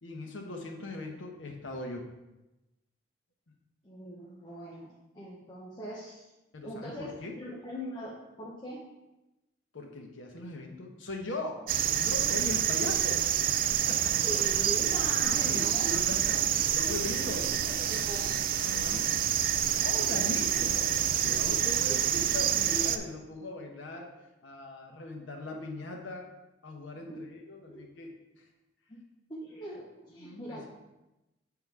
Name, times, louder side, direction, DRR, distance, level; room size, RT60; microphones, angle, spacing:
voice 1, 0.0-2.1 6.5-7.3 9.7-11.6 12.0-13.3 13.9-14.2 15.2-16.4 16.7-17.5 18.6-19.2 19.8-24.1 24.4-26.3 26.6-28.5 30.1-30.7, left 2 dB, 90° left, 1 dB, 1.2 m, -39 dB
voice 2, 3.8-6.3 6.6-7.1 7.4-8.8 14.2-16.6 17.1-18.4 21.9-22.5 27.1-27.2 27.7-27.9 28.9-29.0 29.3-30.7, equal, 20° left, -6 dB, 0.9 m, -41 dB
sound 1, 11.7-23.0, right 10 dB, 50° right, 0.3 m, -27 dB
7.1 x 3.9 x 4.6 m, 0.99 s
head